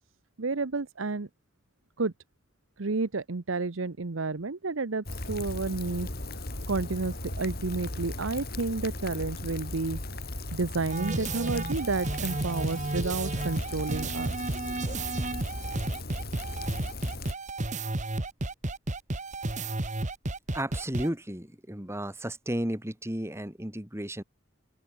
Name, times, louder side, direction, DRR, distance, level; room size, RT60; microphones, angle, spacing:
voice 1, 0.4-1.3 2.0-2.1 2.8-6.1 6.7-10.0 10.5-14.6, right 3 dB, 80° right, 0.9 m, -31 dB
Rain, 5.1-17.3, left 2 dB, 50° left, 4.4 m, -37 dB
sound 1, 10.9-21.1, right 2 dB, 40° right, 1.7 m, -32 dB
voice 2, 20.5-24.2, right 1 dB, 15° right, 2.6 m, -33 dB
open air
head